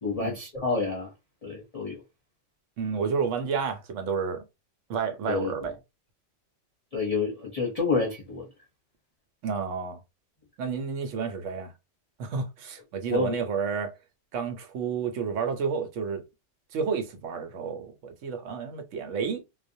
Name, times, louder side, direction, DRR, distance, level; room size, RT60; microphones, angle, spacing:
voice 1, 0.0-1.1 1.4-2.0 5.3-5.7 6.9-8.5 13.1-13.3, left 4 dB, 40° left, 0.7 m, -29 dB
voice 2, 2.8-4.4 4.9-5.8 9.4-10.0 10.6-11.7 12.2-13.9 14.3-16.2 16.7-19.4, right 6 dB, 90° right, 1.0 m, -30 dB
2.4 x 2.1 x 2.6 m
omnidirectional pair, 1.2 m